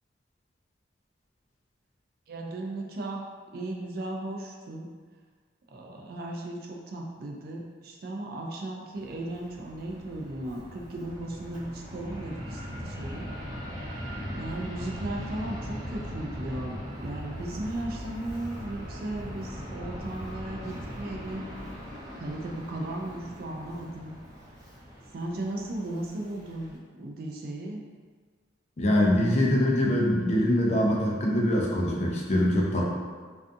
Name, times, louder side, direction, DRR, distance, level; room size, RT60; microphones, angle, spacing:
voice 1, 2.3-4.9 5.7-13.3 14.3-21.4 22.2-24.2 25.1-27.8, right 1 dB, 50° right, 0 dB, 0.3 m, -36 dB
Fixed-wing aircraft airplane, 8.9-26.7, equal, 15° right, 0.7 m, -40 dB
voice 2, 28.8-32.9, left 1 dB, 35° left, -2 dB, 0.4 m, -23 dB
2.5 x 2.3 x 2.5 m, 1.5 s
head